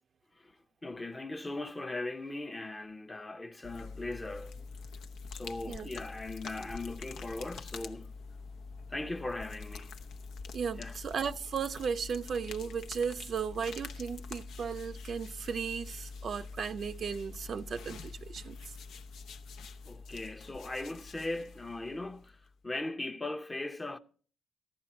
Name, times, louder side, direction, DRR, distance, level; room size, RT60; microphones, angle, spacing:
voice 1, 0.3-4.6 5.3-8.2 8.9-10.0 10.8-11.0 19.8-24.0, left 2 dB, 20° left, 0.7 m, -39 dB
sound 1, 3.6-22.5, left 4 dB, 75° left, 0.8 m, -45 dB
voice 2, 10.5-18.6, right 6 dB, 50° right, 0.5 m, -35 dB
14.5 x 11.0 x 4.3 m
cardioid pair, 90°, 0 cm